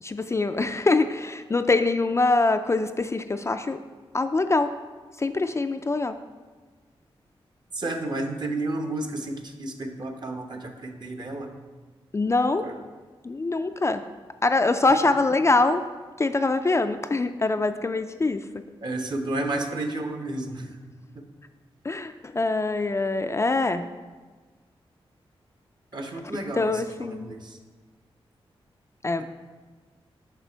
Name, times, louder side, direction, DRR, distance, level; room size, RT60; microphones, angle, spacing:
voice 1, 0.0-3.8 4.1-4.7 5.2-6.1 12.1-12.7 13.2-14.0 14.4-15.8 16.2-18.4 21.8-23.8 26.3-27.3 29.0-29.2, left 3 dB, 30° left, 8 dB, 0.4 m, -24 dB
voice 2, 7.7-11.5 12.6-12.7 18.8-20.7 25.9-27.6 29.2-29.3, right 2 dB, 45° right, 4 dB, 0.9 m, -31 dB
6.7 x 5.7 x 4.5 m, 1.4 s
cardioid pair, 80°, 10 cm